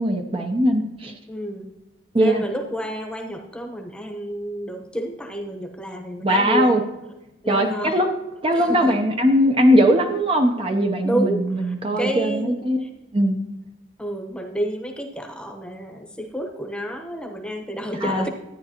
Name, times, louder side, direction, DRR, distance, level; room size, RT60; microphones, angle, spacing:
voice 1, 0.0-1.1 2.1-2.4 6.2-6.8 7.5-8.1 8.4-12.8 13.1-13.4 18.0-18.3, equal, 30° right, 4 dB, 0.7 m, -20 dB
voice 2, 1.3-1.7 2.2-6.7 7.4-8.0 8.6-8.9 11.0-11.4 12.0-12.5 12.8-12.9 14.0-18.3, right 1 dB, 5° left, 3 dB, 0.9 m, -29 dB
13.0 x 9.6 x 2.9 m, 1.0 s
head